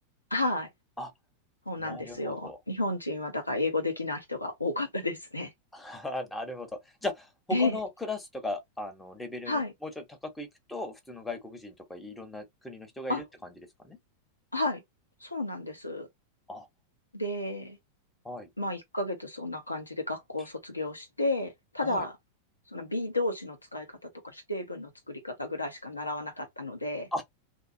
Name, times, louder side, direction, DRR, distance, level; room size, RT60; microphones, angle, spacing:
voice 1, 0.3-0.7 1.7-5.5 7.5-7.8 9.5-9.7 13.1-13.2 14.5-14.8 15.2-16.1 17.1-17.8 18.6-22.2 22.7-27.1, left 2 dB, 85° left, 0.9 m, -32 dB
voice 2, 1.8-2.6 5.7-6.7 7.0-7.3 7.6-13.2 13.8-14.0 16.5-16.7 18.2-18.5 21.8-22.1 27.1-27.2, left 2 dB, 5° left, 1.1 m, -37 dB
2.8 x 2.3 x 2.7 m
figure-of-eight pair, 90°, 0 cm